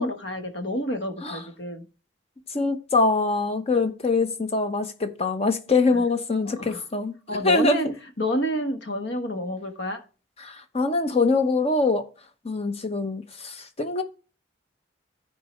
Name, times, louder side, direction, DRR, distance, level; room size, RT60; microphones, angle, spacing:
voice 1, 0.0-1.8 3.7-3.8 6.5-6.8 7.3-7.9 8.2-10.0, equal, 65° left, 1.3 m, -29 dB
voice 2, 2.5-7.1 7.4-7.9 10.4-12.0 12.4-14.0, left 3 dB, 35° left, 0.9 m, -24 dB
13.5 x 4.7 x 3.1 m
head